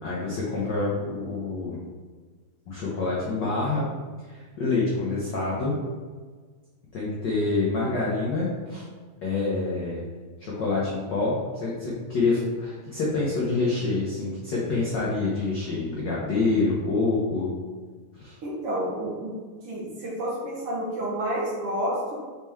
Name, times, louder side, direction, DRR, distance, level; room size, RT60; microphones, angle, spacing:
voice 1, 0.0-1.8 2.7-3.9 4.3-5.7 6.9-8.8 9.2-10.0 10.4-17.5 18.2-18.3, left 3 dB, 70° left, -6 dB, 1.0 m, -27 dB
voice 2, 18.4-19.4 19.6-22.2, right 1 dB, 55° right, -5 dB, 1.8 m, -29 dB
5.9 x 4.4 x 3.6 m, 1.5 s
omnidirectional pair, 3.4 m